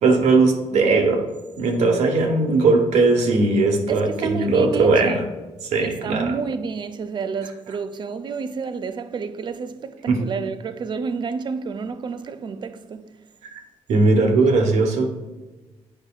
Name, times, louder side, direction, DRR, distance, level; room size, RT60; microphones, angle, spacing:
voice 1, 0.0-1.2 1.6-5.2 5.7-6.3 10.1-10.2 13.5-13.6 13.9-15.1, right 3 dB, 85° right, 1.1 m, -18 dB
voice 2, 3.9-5.2 5.8-13.3, right 5 dB, 40° right, 0.4 m, -30 dB
9.2 x 5.3 x 2.3 m
cardioid pair, 110°, 11 cm